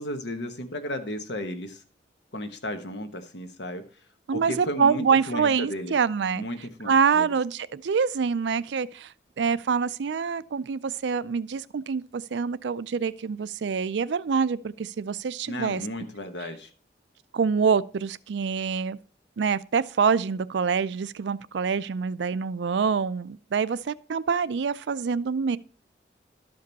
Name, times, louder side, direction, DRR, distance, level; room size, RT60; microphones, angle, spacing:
voice 1, 0.0-1.8 2.3-3.8 4.3-5.9 6.3-7.3 15.5-16.7, left 1 dB, 80° left, 1.2 m, -34 dB
voice 2, 4.3-6.4 6.9-15.8 17.3-19.0 19.4-25.6, right 6 dB, 85° right, 0.4 m, -26 dB
12.5 x 5.2 x 4.0 m
head